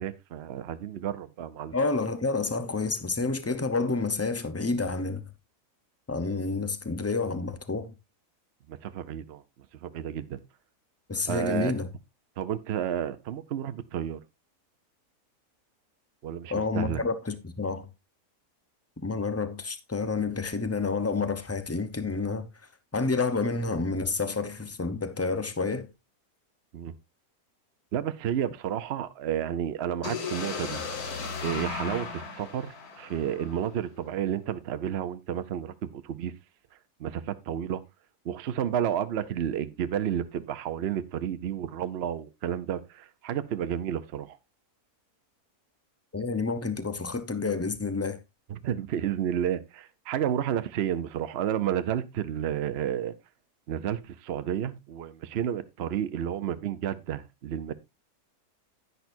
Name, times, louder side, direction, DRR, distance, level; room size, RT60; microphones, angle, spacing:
voice 1, 0.0-1.8 8.7-9.4 9.8-10.4 11.3-11.8 12.4-14.2 16.2-17.0 26.7-26.9 27.9-30.8 31.4-36.3 37.0-37.8 38.2-44.4 48.5-53.1 53.7-57.7, right 9 dB, 55° right, 0.7 m, -31 dB
voice 2, 1.7-5.3 6.1-7.9 11.1-11.9 16.5-17.9 19.0-22.5 22.9-25.9 46.1-48.2, left 4 dB, 25° left, 0.3 m, -29 dB
sound 1, 30.0-33.9, left 5 dB, 75° left, 1.9 m, -36 dB
10.5 x 9.5 x 2.6 m
omnidirectional pair, 1.7 m